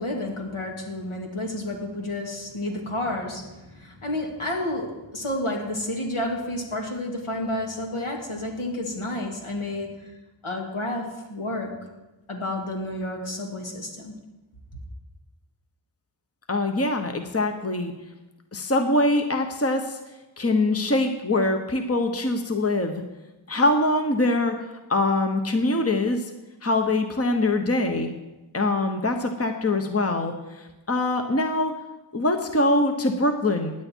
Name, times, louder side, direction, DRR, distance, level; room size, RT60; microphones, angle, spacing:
voice 1, 0.0-10.0 10.4-11.7 12.3-14.1, left 1 dB, 75° left, 0 dB, 2.5 m, -30 dB
voice 2, 16.5-17.9 18.5-20.0 20.4-23.0 23.5-24.6 24.9-26.3 26.6-28.1 28.5-31.7 32.1-33.7, left 2 dB, 30° left, 5 dB, 1.1 m, -23 dB
16.0 x 9.4 x 4.6 m, 1.1 s
wide cardioid pair, 45°, 50 cm